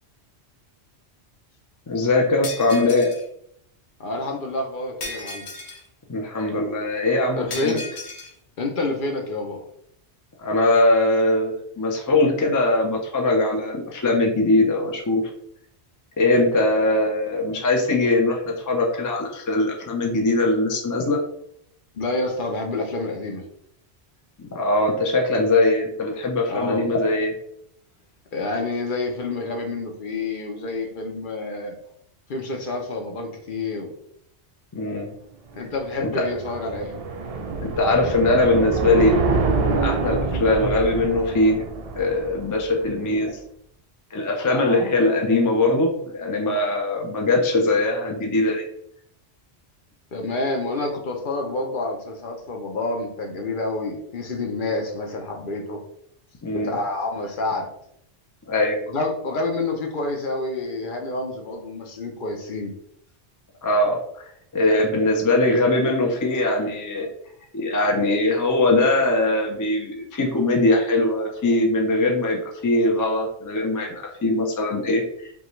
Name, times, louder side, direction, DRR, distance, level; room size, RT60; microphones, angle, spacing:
voice 1, 1.9-3.1 6.1-7.8 10.4-15.2 16.2-21.2 24.4-27.3 34.7-35.1 36.0-36.2 37.6-39.2 39.5-41.6 41.9-43.4 44.1-48.6 56.4-56.8 58.5-58.8 63.6-64.2 64.5-67.1 67.5-75.0, left 2 dB, 30° left, 1 dB, 0.3 m, -21 dB
Shatter, 2.4-3.2 5.0-5.9 7.5-8.3, left 3 dB, 75° left, 1.1 m, -35 dB
voice 2, 4.0-5.4 7.4-7.8 8.6-9.6 21.9-23.4 26.5-26.8 28.3-31.8 32.3-33.9 35.5-36.9 44.5-44.8 50.1-55.8 56.5-57.7 58.9-62.7, left 2 dB, 55° left, 2 dB, 0.8 m, -28 dB
sound 1, 35.5-42.9, right 3 dB, 60° right, 0.4 m, -26 dB
5.3 x 2.3 x 3.0 m, 0.72 s
omnidirectional pair, 1.1 m